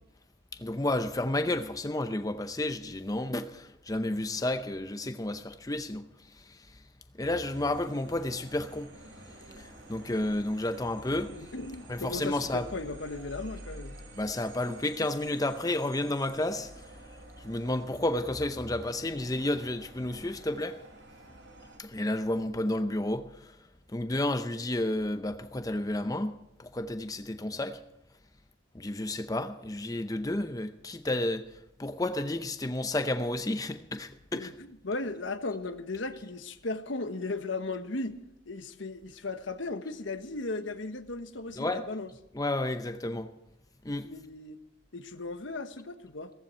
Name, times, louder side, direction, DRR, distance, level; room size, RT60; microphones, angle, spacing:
voice 1, 0.5-6.8 7.2-8.9 9.3-11.4 11.9-12.7 14.2-16.9 17.4-20.8 21.8-23.6 23.9-27.8 28.7-34.5 41.5-41.9 42.3-43.3 43.8-44.1, left 1 dB, 20° left, 0.7 m, -31 dB
sound 1, 7.5-21.8, right 2 dB, 80° right, 6.7 m, -52 dB
voice 2, 11.1-14.0 34.3-38.2 38.5-42.1 44.0-44.6 44.9-46.3, left 3 dB, 80° left, 1.2 m, -36 dB
16.5 x 15.0 x 4.5 m
head